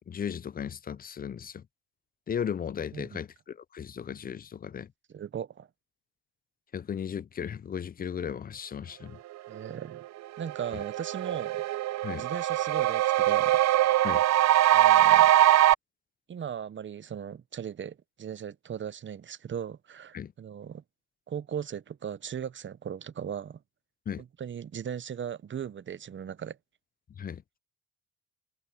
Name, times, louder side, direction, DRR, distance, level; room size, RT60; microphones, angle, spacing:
voice 1, 0.1-1.6 2.3-4.9 6.7-9.2 12.0-12.2 14.0-14.2 20.1-20.3 24.1-24.2 27.2-27.4, left 8 dB, 30° left, 0.5 m, -36 dB
voice 2, 5.1-5.7 9.5-10.0 10.4-11.6 12.2-13.6 14.7-15.3 16.3-20.8 21.3-23.6 24.2-26.6, right 8 dB, 40° right, 0.8 m, -38 dB
sound 1, 10.0-10.1 10.4-15.7, right 13 dB, 60° right, 0.5 m, -22 dB
cardioid pair, 90°, 30 cm